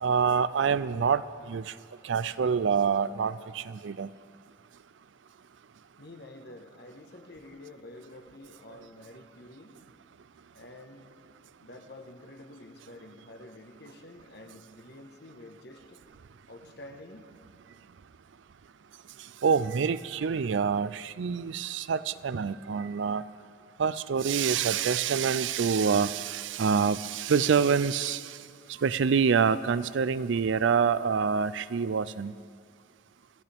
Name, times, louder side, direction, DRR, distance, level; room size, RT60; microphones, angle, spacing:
voice 1, 0.0-1.7 2.0-4.1 19.4-23.2 23.8-28.4 28.8-32.3, right 6 dB, 75° right, 16 dB, 0.4 m, -26 dB
voice 2, 6.0-9.8 10.5-11.2 11.6-16.0 16.5-17.3, left 1 dB, 55° left, 5 dB, 1.3 m, -48 dB
24.5 x 15.0 x 3.5 m, 2.2 s
head